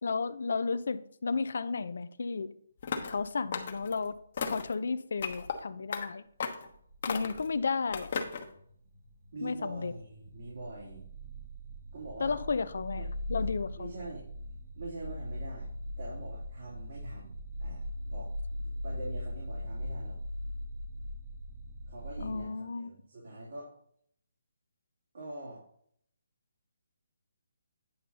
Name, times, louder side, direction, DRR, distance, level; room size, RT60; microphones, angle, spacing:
voice 1, 0.0-2.5 2.9-4.2 4.4-6.2 7.1-8.1 9.4-9.9 12.2-13.0 13.3-14.1 22.2-22.9, left 4 dB, 70° left, 0.6 m, -33 dB
sound 1, 2.8-3.2 3.5-4.0 4.4-4.7 5.2-5.6 5.9-6.1 6.4-6.7 7.0-7.5 7.9-8.5, left 5 dB, 45° left, 1.1 m, -35 dB
sound 2, 6.7-8.3 8.6-22.4, left 1 dB, 45° right, 1.5 m, -40 dB
voice 2, 9.3-11.1 11.9-12.4 13.0-13.1 13.8-14.3 14.7-15.7 16.0-20.2 21.9-23.7 25.1-25.6, right 2 dB, 65° right, 3.1 m, -44 dB
9.4 x 5.3 x 4.1 m
hypercardioid pair, 160°, 0 cm